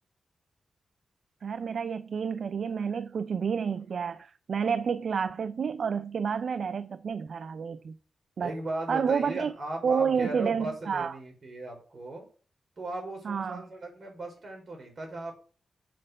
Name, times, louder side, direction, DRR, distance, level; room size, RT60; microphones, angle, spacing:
voice 1, 1.4-8.0 8.4-8.5 8.9-9.5 9.8-11.1 13.3-13.6, right 6 dB, 65° right, 0.4 m, -29 dB
voice 2, 8.4-12.3 12.8-15.4, right 2 dB, 50° right, 5.1 m, -37 dB
7.7 x 5.2 x 6.4 m
cardioid pair, 80°, 0 cm